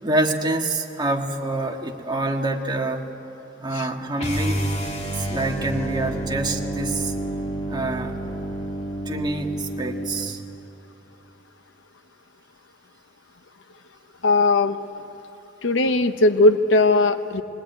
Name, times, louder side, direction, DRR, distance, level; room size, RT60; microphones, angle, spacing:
voice 1, 0.0-3.0 3.6-4.7 5.1-7.1 7.7-8.1 9.1-10.4, right 2 dB, 25° right, 2 dB, 1.7 m, -26 dB
sound 1, 4.2-10.3, right 1 dB, 35° left, 2.2 m, -29 dB
voice 2, 14.2-14.8 15.6-17.4, left 2 dB, 80° left, 9 dB, 0.9 m, -18 dB
22.5 x 19.0 x 9.3 m, 2.9 s
head